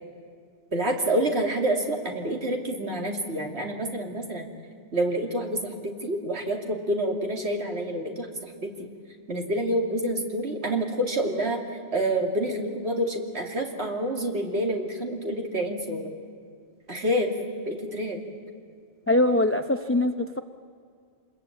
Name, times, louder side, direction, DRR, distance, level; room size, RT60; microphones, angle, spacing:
voice 1, 0.7-4.5 4.9-5.6 5.8-8.7 9.3-11.6 11.9-16.1 16.9-17.3 17.6-18.2, right 1 dB, 65° right, 2 dB, 2.9 m, -28 dB
voice 2, 19.1-20.4, left 1 dB, 15° left, 7 dB, 0.5 m, -22 dB
27.0 x 21.0 x 8.7 m, 2.1 s
omnidirectional pair, 1.2 m